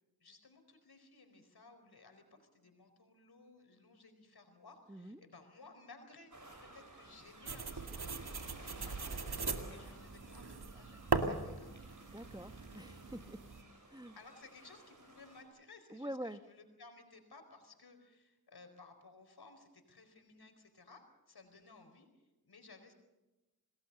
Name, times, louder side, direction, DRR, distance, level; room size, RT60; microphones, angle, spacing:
voice 1, 0.2-11.8 14.2-22.9, left 3 dB, 80° left, 6 dB, 4.6 m, -59 dB
voice 2, 4.9-5.2 12.1-13.4 13.9-14.2 15.9-16.4, right 1 dB, 10° right, 10 dB, 1.2 m, -45 dB
sound 1, 6.3-15.4, right 2 dB, 55° right, 7.0 m, -56 dB
sound 2, 7.5-13.6, right 4 dB, 80° right, 2.2 m, -39 dB
27.5 x 19.0 x 6.9 m, 1.1 s
cardioid pair, 40°, 38 cm